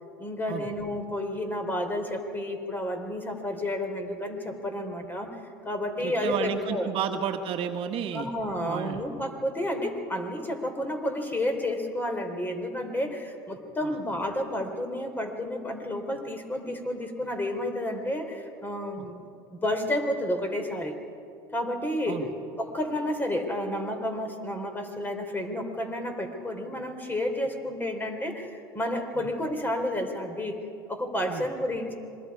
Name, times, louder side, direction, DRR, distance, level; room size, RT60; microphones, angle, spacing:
voice 1, 0.2-6.9 8.1-19.2 19.5-21.0 21.5-22.2 22.6-30.6 30.9-31.9, left 1 dB, 15° left, 5 dB, 3.5 m, -31 dB
voice 2, 6.0-8.3 8.6-9.0 13.8-13.9 19.0-19.1 22.1-22.3 29.2-29.3 31.3-31.4, right 8 dB, 55° right, 5 dB, 1.4 m, -31 dB
26.5 x 21.5 x 4.8 m, 2.5 s
supercardioid pair, 95°, 12 cm